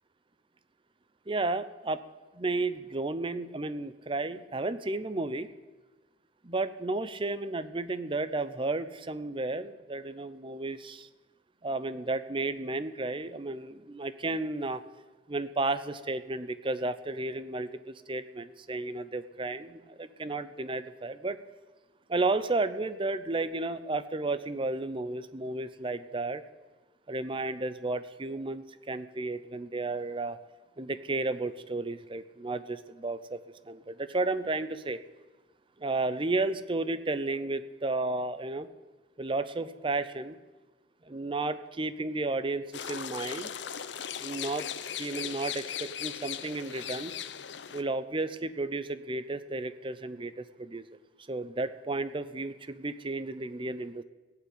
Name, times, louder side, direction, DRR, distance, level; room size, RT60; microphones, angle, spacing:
voice 1, 1.3-2.0 2.3-5.5 6.4-11.1 11.6-14.8 15.3-21.4 22.1-26.4 27.1-30.4 30.8-33.4 33.7-35.0 35.8-38.7 39.2-40.4 41.0-43.5 44.2-44.7 45.0-47.1 47.7-50.9 51.3-54.0, right 2 dB, 30° right, 12 dB, 0.7 m, -33 dB
sound 1, 42.7-47.8, left 9 dB, 75° left, 0.7 m, -38 dB
17.0 x 5.9 x 9.6 m, 1.2 s
head